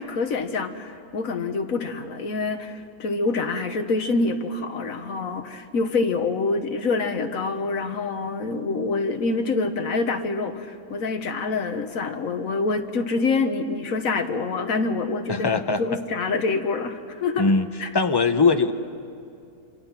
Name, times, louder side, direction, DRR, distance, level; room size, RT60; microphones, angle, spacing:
voice 1, 0.0-17.5 17.8-17.9, left 3 dB, 65° left, 7 dB, 1.6 m, -26 dB
voice 2, 15.3-15.8 17.4-17.7 17.9-18.7, left 4 dB, 25° left, 8 dB, 0.6 m, -20 dB
27.0 x 26.5 x 6.0 m, 2.5 s
omnidirectional pair, 1.6 m